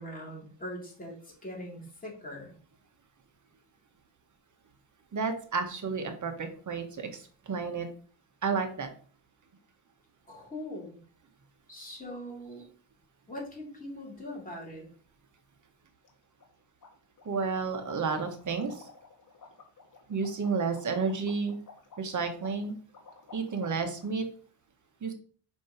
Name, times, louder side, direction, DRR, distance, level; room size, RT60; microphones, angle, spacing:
voice 1, 0.0-2.6 10.3-11.0 11.7-12.7 13.3-14.9, left 1 dB, 20° left, -3 dB, 3.6 m, -41 dB
voice 2, 5.1-7.9 8.4-8.9 17.2-18.9 20.1-21.6 22.0-22.7 23.3-24.2 25.0-25.1, right 5 dB, 40° right, 5 dB, 1.5 m, -31 dB
sound 1, 16.0-16.1 16.4-16.5 16.8-24.1, left 5 dB, 45° left, 1.9 m, -52 dB
5.9 x 5.2 x 5.1 m, 0.43 s
cardioid pair, 115°, 45 cm